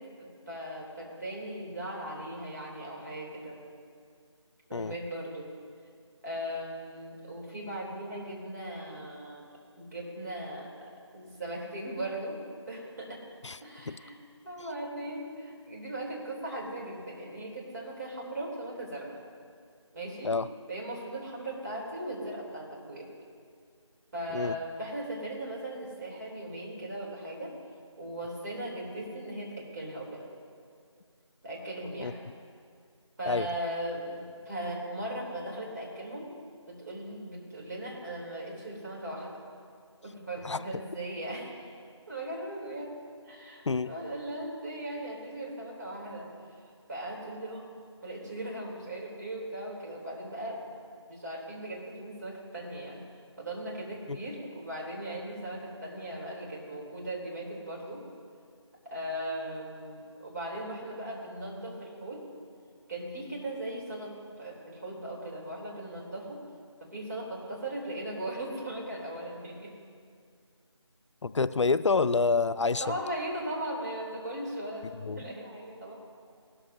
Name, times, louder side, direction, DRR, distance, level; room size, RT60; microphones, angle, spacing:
voice 1, 0.0-3.6 4.7-5.5 6.2-9.5 9.8-10.7 11.1-12.4 12.6-13.2 13.6-14.2 14.4-19.2 19.9-20.3 20.7-23.1 24.1-27.6 28.0-30.3 31.4-32.2 33.2-36.3 36.7-39.4 40.0-41.7 42.1-42.9 43.2-46.3 46.9-47.7 48.0-50.8 51.1-53.0 53.4-58.0 58.9-62.2 62.9-66.4 66.8-69.7 72.8-75.9, right 1 dB, 35° right, -4 dB, 3.2 m, -38 dB
voice 2, 71.2-72.9 75.0-75.2, left 4 dB, 70° left, 14 dB, 0.4 m, -27 dB
19.5 x 13.0 x 2.7 m, 2.3 s
figure-of-eight pair, 170°, 15 cm